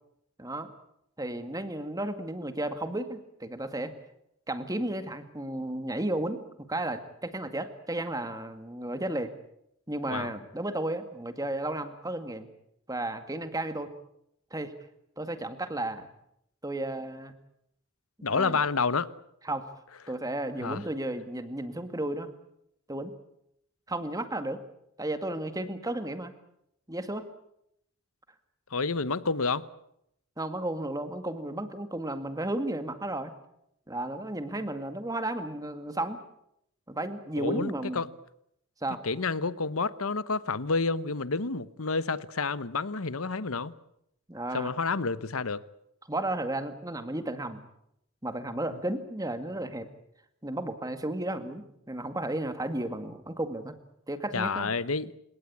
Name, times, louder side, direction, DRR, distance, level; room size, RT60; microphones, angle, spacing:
voice 1, 0.4-0.7 1.2-3.9 4.5-9.3 9.9-12.5 12.9-13.9 14.5-14.7 15.2-16.1 16.6-17.3 18.3-18.6 19.4-19.6 20.1-22.3 22.9-23.1 23.9-24.6 25.0-26.3 26.9-27.3 30.4-33.3 33.9-36.2 36.9-38.0 38.8-39.0 44.3-44.7 46.1-47.6 48.2-49.9 50.4-53.8 54.1-54.7, right 1 dB, 15° right, 2.0 m, -33 dB
voice 2, 18.2-19.1 20.6-20.8 28.7-29.6 37.4-38.1 39.0-43.7 44.5-45.6 54.3-55.1, left 4 dB, 80° left, 1.1 m, -29 dB
29.0 x 18.0 x 8.7 m
head